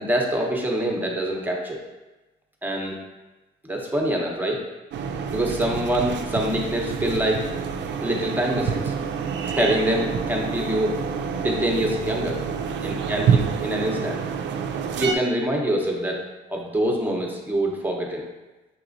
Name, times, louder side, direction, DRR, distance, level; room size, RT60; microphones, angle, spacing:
voice 1, 0.0-1.8 2.6-3.0 3.6-4.6 5.3-7.5 8.0-8.9 9.4-11.0 11.4-12.4 12.8-14.2 14.9-16.2 16.5-18.2, right 1 dB, 10° right, 0 dB, 0.8 m, -25 dB
sound 1, 4.9-15.1, right 6 dB, 65° right, 0.4 m, -27 dB
5.8 x 3.0 x 2.5 m, 1.1 s
cardioid pair, 90°, 20 cm